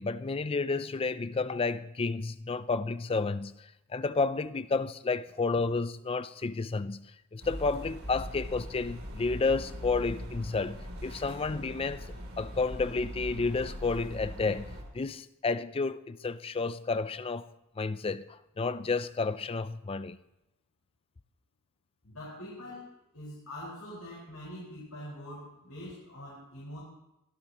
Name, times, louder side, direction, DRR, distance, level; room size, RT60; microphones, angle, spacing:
voice 1, 0.0-17.5 17.8-20.2, left 4 dB, 25° left, 0.4 m, -31 dB
sound 1, 7.4-14.8, equal, 70° right, 3.0 m, -41 dB
voice 2, 22.0-22.9 23.1-26.8, left 1 dB, 90° left, 4.7 m, -44 dB
23.0 x 12.0 x 3.0 m
head